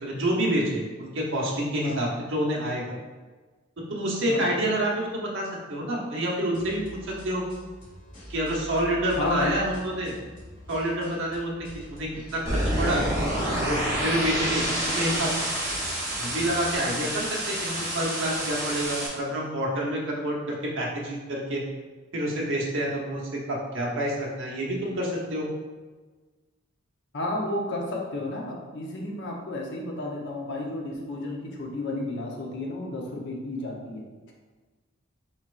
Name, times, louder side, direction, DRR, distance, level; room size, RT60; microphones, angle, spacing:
voice 1, 0.0-2.9 3.9-7.4 8.3-10.1 10.7-11.5 11.9-13.0 13.5-15.3 16.2-21.6 22.1-25.5, right 1 dB, 65° right, -3 dB, 1.0 m, -28 dB
sound 1, 6.5-16.7, equal, 40° left, 1.5 m, -45 dB
voice 2, 9.2-9.6 27.1-34.0, left 2 dB, 55° left, -1 dB, 0.9 m, -32 dB
sound 2, 12.5-19.1, right 1 dB, 15° right, 1.1 m, -28 dB
4.9 x 4.3 x 2.5 m, 1.3 s
head